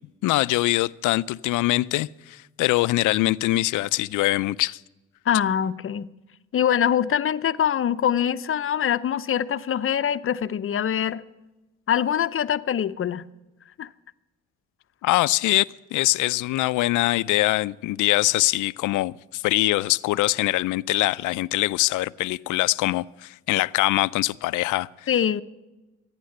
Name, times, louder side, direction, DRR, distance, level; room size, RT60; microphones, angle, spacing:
voice 1, 0.2-4.8 15.0-24.9, left 18 dB, 85° left, 0.5 m, -23 dB
voice 2, 5.3-6.1 6.5-11.2 11.9-13.2 13.8-13.9 25.1-25.4, left 9 dB, 45° left, 0.7 m, -24 dB
14.5 x 9.8 x 7.8 m
cardioid pair, 90°, 30 cm